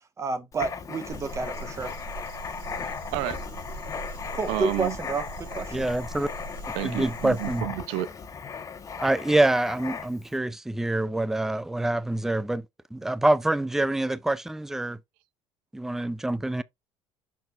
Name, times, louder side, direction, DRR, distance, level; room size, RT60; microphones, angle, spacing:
voice 1, 0.2-1.9 4.3-5.9, right 4 dB, 30° right, 1.4 m, -30 dB
Writing, 0.5-10.3, left 6 dB, 35° left, 1.1 m, -37 dB
sound 1, 1.1-7.6, right 2 dB, 65° right, 3.0 m, -41 dB
voice 2, 4.5-4.9 6.7-8.1, right 16 dB, 85° right, 0.6 m, -30 dB
voice 3, 5.7-6.3 6.8-7.6 9.0-12.7 12.9-15.0 15.7-16.6, right 1 dB, 5° right, 0.4 m, -26 dB
6.6 x 6.0 x 2.4 m
supercardioid pair, 100°, 10 cm